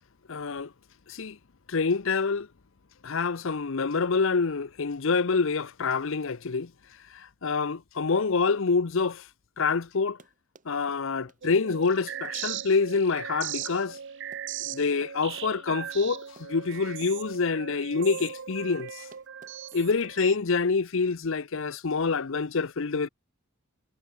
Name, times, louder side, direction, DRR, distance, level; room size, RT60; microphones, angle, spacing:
voice 1, 0.3-0.7 1.1-1.4 1.7-2.5 3.0-6.7 7.1-9.2 9.6-10.2 10.7-14.0 14.7-19.1 19.7-23.1, left 4 dB, 60° left, 0.7 m, -26 dB
Run, 10.0-20.4, right 2 dB, 35° right, 3.8 m, -56 dB
sound 1, 11.4-20.4, right 9 dB, 55° right, 0.6 m, -39 dB
head